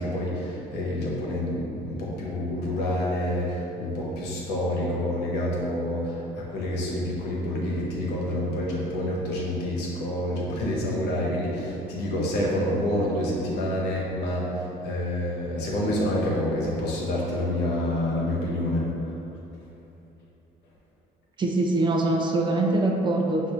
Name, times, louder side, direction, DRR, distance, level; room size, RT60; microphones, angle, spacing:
voice 1, 0.0-18.8, left 1 dB, 80° left, -4 dB, 1.1 m, -28 dB
voice 2, 21.4-23.5, right 2 dB, 30° right, 0 dB, 0.5 m, -23 dB
5.7 x 2.7 x 3.3 m, 3.0 s
cardioid pair, 110°, 17 cm